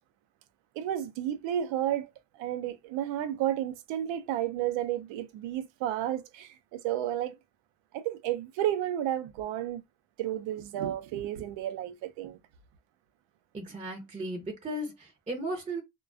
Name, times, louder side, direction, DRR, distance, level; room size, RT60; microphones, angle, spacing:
voice 1, 0.8-2.1 2.4-7.4 7.9-9.8 10.2-12.4, right 11 dB, 90° right, 0.5 m, -32 dB
voice 2, 13.5-15.8, right 1 dB, 15° right, 0.5 m, -36 dB
2.3 x 2.2 x 2.4 m
cardioid pair, 95°, 43 cm